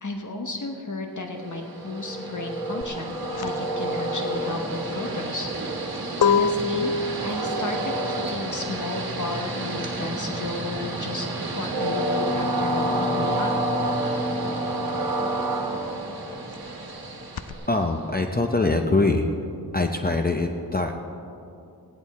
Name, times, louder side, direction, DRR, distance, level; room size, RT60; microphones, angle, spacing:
voice 1, 0.0-5.8 6.2-7.9 8.3-13.5, left 2 dB, 50° left, 3 dB, 1.0 m, -33 dB
Train, 1.4-18.1, right 1 dB, 65° right, 1.4 m, -29 dB
sound 1, 2.8-13.0 13.3-17.5, left 5 dB, 70° left, 0.6 m, -29 dB
voice 2, 17.7-19.3 19.7-21.0, left 2 dB, 25° left, 4 dB, 0.6 m, -23 dB
16.5 x 10.5 x 4.2 m, 2.7 s
wide cardioid pair, 75°, 39 cm